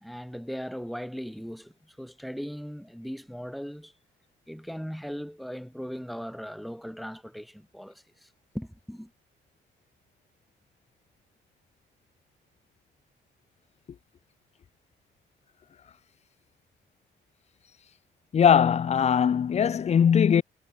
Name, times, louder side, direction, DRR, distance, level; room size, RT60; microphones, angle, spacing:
voice 1, 0.0-3.9 4.5-8.3 8.5-9.1, equal, ahead, 1.1 m, -38 dB
voice 2, 18.3-20.4, left 8 dB, 35° left, 0.5 m, -20 dB
cardioid pair, 90°, 20 cm